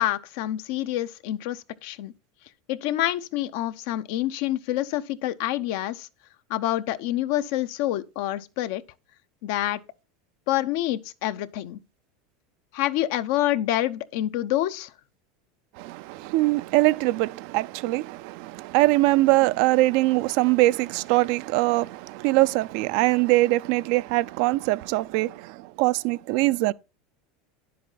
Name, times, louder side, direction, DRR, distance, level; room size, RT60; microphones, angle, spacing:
voice 1, 0.0-2.1 2.7-6.1 6.5-8.8 9.4-9.8 10.5-11.8 12.7-14.9, left 14 dB, 70° left, 0.7 m, -27 dB
voice 2, 15.8-25.4 25.8-26.7, right 20 dB, 65° right, 0.4 m, -22 dB
10.0 x 7.7 x 4.0 m
supercardioid pair, 120°, 0 cm